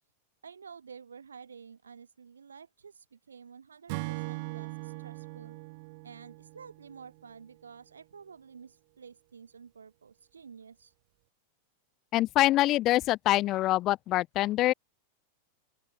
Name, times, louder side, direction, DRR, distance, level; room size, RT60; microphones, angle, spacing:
voice 1, 0.4-5.6 6.0-10.9, right 6 dB, 70° right, 5.5 m, -50 dB
Acoustic guitar / Strum, 3.9-7.3, right 28 dB, 45° right, 0.7 m, -40 dB
voice 2, 12.1-14.7, left 16 dB, 35° left, 0.6 m, -25 dB
open air
figure-of-eight pair, 90°, 0 cm